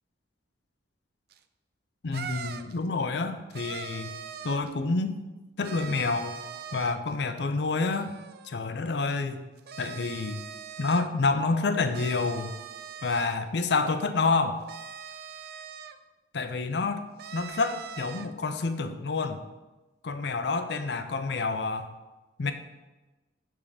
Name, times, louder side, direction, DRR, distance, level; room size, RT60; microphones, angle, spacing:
sound 1, 1.3-1.4 2.1-2.8 3.5-4.7 5.6-7.1 7.9-8.5 9.6-11.1 11.9-13.4 14.7-16.0 17.2-18.3, right 7 dB, 50° right, 0.3 m, -41 dB
voice 1, 2.0-4.1 4.4-5.2 5.6-6.4 6.7-8.1 8.4-9.4 9.8-10.4 10.8-12.5 13.0-14.6 16.3-17.0 17.3-19.4 20.0-21.9 22.4-22.5, left 3 dB, 65° left, 9 dB, 0.5 m, -28 dB
7.2 x 3.6 x 4.9 m, 1.1 s
head